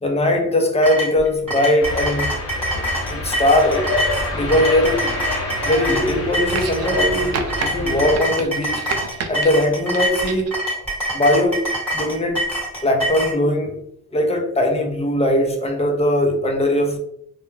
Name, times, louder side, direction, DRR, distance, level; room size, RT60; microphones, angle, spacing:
voice 1, 0.0-2.3 3.1-3.9 4.3-5.1 5.6-8.9 9.3-10.5 11.1-12.4 12.8-13.8 14.1-17.0, left 1 dB, 20° left, 0.6 m, -20 dB
sound 1, 0.8-13.3, equal, 5° left, 1.2 m, -25 dB
sound 2, 1.8-8.2, left 2 dB, 50° left, 0.9 m, -27 dB
sound 3, 6.5-7.0 7.3-7.7 8.1-9.5 9.9-10.6 11.6-11.7, right 5 dB, 55° right, 0.5 m, -29 dB
2.2 x 2.2 x 3.1 m
cardioid pair, 90°, 30 cm